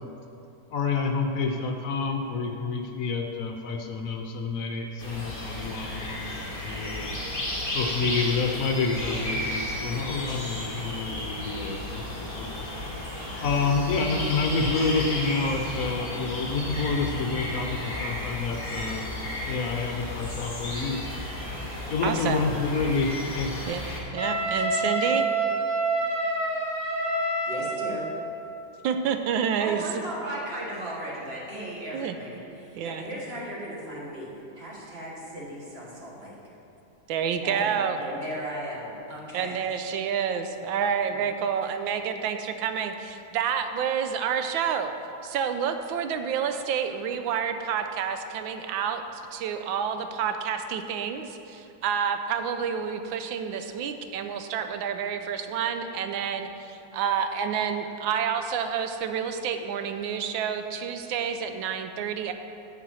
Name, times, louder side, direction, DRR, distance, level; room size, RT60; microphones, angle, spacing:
voice 1, 0.7-6.3 6.6-7.1 7.7-12.7 13.4-19.1 19.4-21.1 21.9-23.6, left 4 dB, 55° left, 4 dB, 1.0 m, -28 dB
sound 1, 5.0-24.0, left 1 dB, 30° left, 2.0 m, -33 dB
voice 2, 22.0-22.4 23.7-23.8 24.1-25.3 28.8-29.8 31.9-32.2 32.8-33.0 37.1-38.0 39.3-44.9 45.2-62.3, right 7 dB, 90° right, 7 dB, 1.4 m, -29 dB
Wind instrument woodwind instrument, 24.2-28.1, right 2 dB, 15° right, 2.0 m, -27 dB
voice 3, 27.5-28.1 29.6-36.4 37.4-39.5 41.1-41.2, right 1 dB, 35° right, -4 dB, 1.6 m, -36 dB
8.4 x 6.8 x 6.3 m, 2.8 s
omnidirectional pair, 2.1 m